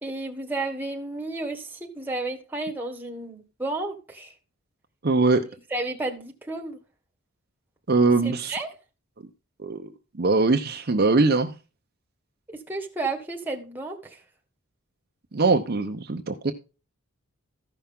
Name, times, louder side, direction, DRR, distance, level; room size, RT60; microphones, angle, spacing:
voice 1, 0.0-4.3 5.7-6.8 8.2-8.7 12.5-14.2, right 2 dB, 10° right, 1.4 m, -32 dB
voice 2, 5.0-5.4 7.9-8.6 9.6-9.9 10.2-11.5 15.3-16.5, right 3 dB, 45° right, 0.8 m, -21 dB
14.0 x 5.8 x 3.6 m
head